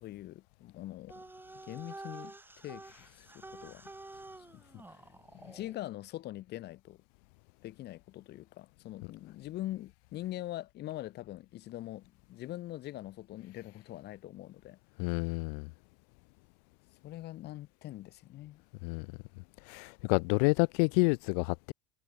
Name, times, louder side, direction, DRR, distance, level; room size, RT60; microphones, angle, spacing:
voice 1, 0.0-1.2 1.7-2.3 2.6-3.9 4.5-5.0 5.3-7.0 7.6-14.8 17.0-18.6, left 15 dB, 55° left, 3.4 m, -43 dB
sound 1, 1.1-5.8, right 2 dB, 10° right, 4.3 m, -49 dB
voice 2, 15.0-15.7 18.8-19.1 19.6-21.7, left 35 dB, 75° left, 2.2 m, -29 dB
supercardioid pair, 100°, 21 cm